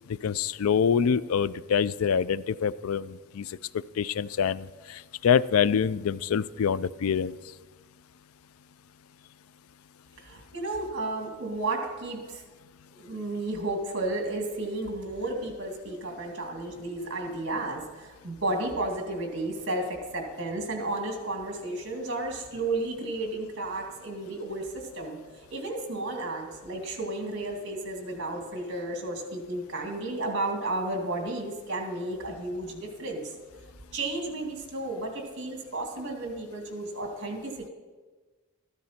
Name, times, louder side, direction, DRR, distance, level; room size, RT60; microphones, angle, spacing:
voice 1, 0.2-3.5 4.0-7.3, left 7 dB, 85° left, 18 dB, 0.4 m, -25 dB
voice 2, 10.2-12.4 12.9-33.3 33.9-37.7, right 2 dB, 55° right, 2 dB, 2.3 m, -33 dB
13.5 x 12.5 x 4.3 m, 1.3 s
head